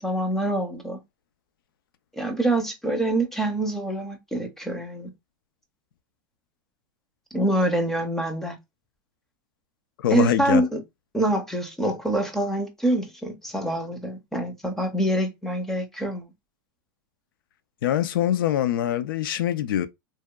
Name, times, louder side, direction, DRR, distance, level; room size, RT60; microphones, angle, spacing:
voice 1, 0.0-1.0 2.2-5.1 7.3-8.6 10.1-10.8 11.1-16.2, right 1 dB, 5° left, 0.4 m, -25 dB
voice 2, 10.0-10.6 17.8-19.9, left 10 dB, 80° left, 0.4 m, -23 dB
2.9 x 2.1 x 2.2 m
supercardioid pair, 155°, 11 cm